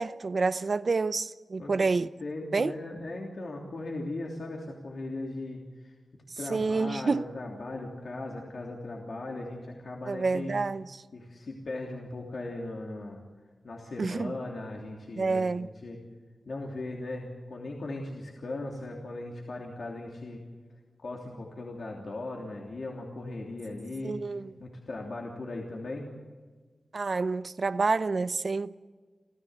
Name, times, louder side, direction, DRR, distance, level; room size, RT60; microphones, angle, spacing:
voice 1, 0.0-2.1 2.5-2.7 6.5-7.3 10.1-11.0 14.0-14.4 15.2-15.7 24.0-24.5 26.9-28.7, right 4 dB, 55° right, 0.7 m, -28 dB
voice 2, 2.2-5.9 6.4-10.5 11.1-13.2 13.6-16.0 16.5-20.4 21.0-24.2 24.6-26.1, left 2 dB, 65° left, 3.2 m, -38 dB
28.5 x 14.5 x 8.2 m
wide cardioid pair, 75°, 0 cm